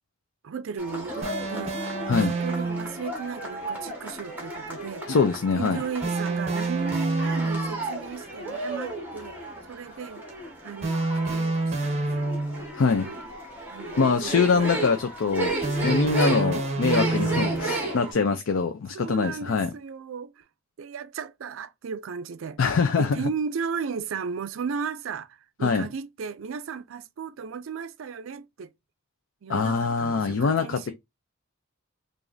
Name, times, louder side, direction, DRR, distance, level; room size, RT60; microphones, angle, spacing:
voice 1, 0.4-1.8 2.2-5.1 5.5-9.4 9.6-12.3 12.9-13.2 13.7-14.7 16.2-16.8 17.4-18.2 18.9-20.4 20.8-22.6 23.0-28.7 29.4-30.9, right 6 dB, 70° right, 0.4 m, -35 dB
sound 1, 0.8-18.1, right 2 dB, 10° right, 1.3 m, -34 dB
sound 2, 1.2-3.0 6.0-7.9 10.8-12.8 15.6-17.8, right 2 dB, 30° right, 0.9 m, -28 dB
voice 2, 5.1-5.8 12.7-13.1 14.0-19.7 22.6-23.2 25.6-25.9 29.5-30.9, left 5 dB, 75° left, 0.5 m, -24 dB
4.8 x 2.5 x 2.6 m
head